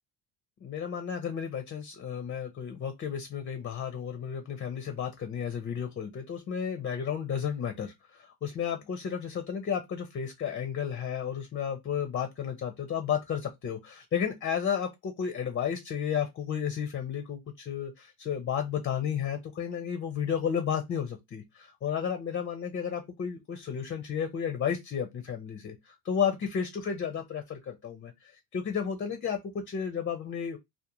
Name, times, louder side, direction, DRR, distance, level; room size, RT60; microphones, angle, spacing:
voice 1, 0.6-30.6, left 8 dB, 25° left, 0.4 m, -32 dB
2.3 x 2.2 x 2.8 m
supercardioid pair, 95°, 50 cm